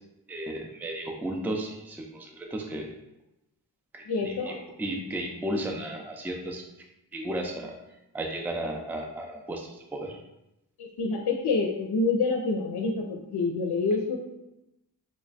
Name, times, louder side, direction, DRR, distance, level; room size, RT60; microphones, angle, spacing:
voice 1, 0.3-3.0 3.9-4.5 4.8-6.6 7.1-7.7 8.1-10.2, right 1 dB, 5° right, 2 dB, 0.4 m, -34 dB
voice 2, 4.1-4.6 10.8-14.2, left 3 dB, 75° left, 2 dB, 0.5 m, -27 dB
3.1 x 2.2 x 4.0 m, 0.90 s
wide cardioid pair, 65°, 41 cm